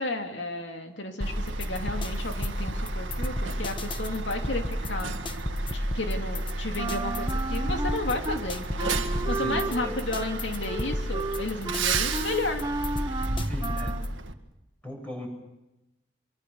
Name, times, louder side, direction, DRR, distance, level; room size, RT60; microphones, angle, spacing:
voice 1, 0.0-5.3 5.7-12.6, left 2 dB, 70° left, 4 dB, 2.5 m, -33 dB
sound 1, 1.2-14.2, left 1 dB, 25° left, 1.3 m, -34 dB
Truck, 1.2-14.3, right 2 dB, 90° right, 1.8 m, -32 dB
Wind instrument woodwind instrument, 6.8-8.4 8.8-14.1, right 2 dB, 20° right, 1.0 m, -34 dB
voice 2, 9.3-10.0 13.4-14.0 14.8-15.3, equal, 5° left, 1 dB, 7.4 m, -38 dB
25.0 x 23.5 x 6.9 m, 0.93 s
head